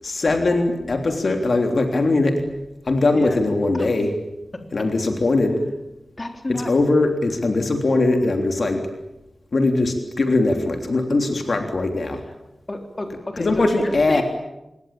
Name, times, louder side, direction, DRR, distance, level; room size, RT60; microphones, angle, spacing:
voice 1, 0.0-2.4 2.9-4.1 4.7-5.7 6.7-8.8 9.5-12.2 13.4-14.2, left 2 dB, 60° left, 4 dB, 3.4 m, -20 dB
voice 2, 6.2-6.7 12.7-14.2, left 2 dB, 30° left, 4 dB, 3.8 m, -30 dB
27.0 x 22.0 x 8.8 m, 0.95 s
wide cardioid pair, 100°, 0 cm